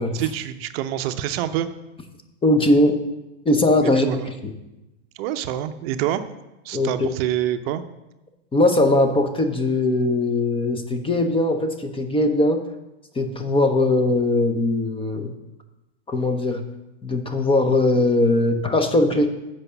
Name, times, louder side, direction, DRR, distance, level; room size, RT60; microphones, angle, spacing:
voice 1, 0.0-1.7 3.8-4.3 5.2-6.2 6.6-7.8, right 11 dB, 55° right, 10 dB, 0.7 m, -26 dB
voice 2, 2.4-3.0 3.4-4.5 6.7-7.1 8.5-12.6 13.1-15.3 16.1-16.6 17.0-19.3, left 2 dB, 15° left, 6 dB, 0.8 m, -20 dB
8.1 x 5.1 x 6.8 m, 0.99 s
hypercardioid pair, 115°, 37 cm